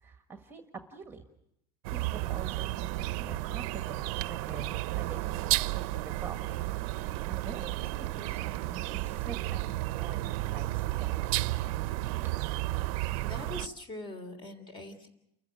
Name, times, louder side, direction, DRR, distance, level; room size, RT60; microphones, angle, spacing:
voice 1, 0.0-0.6 0.9-1.2 1.9-4.7 5.0-7.9 8.2-11.2, right 4 dB, 10° right, 6 dB, 1.5 m, -46 dB
sound 1, 1.8-13.7, right 17 dB, 75° right, 0.8 m, -32 dB
voice 2, 13.2-15.1, left 2 dB, 25° left, 8 dB, 3.3 m, -42 dB
29.5 x 15.0 x 9.1 m, 0.81 s
cardioid pair, 170°, 19 cm